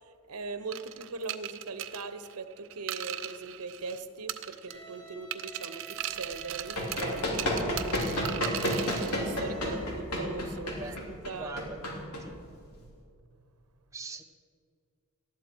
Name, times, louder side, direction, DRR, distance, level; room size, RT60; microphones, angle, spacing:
voice 1, 0.0-7.5 8.6-11.5, right 4 dB, 85° right, 10 dB, 1.0 m, -40 dB
sound 1, 0.7-4.0 4.3-5.0 5.3-9.2, right 12 dB, 60° right, 0.7 m, -38 dB
Bowed string instrument, 4.7-9.7, right 6 dB, 35° right, 4.6 m, -49 dB
Run, 6.4-12.8, left 1 dB, 80° left, 3.2 m, -31 dB
voice 2, 11.4-11.8 12.2-12.3 13.9-14.2, right 3 dB, 15° right, 3 dB, 1.0 m, -41 dB
19.0 x 14.0 x 4.7 m, 2.4 s
head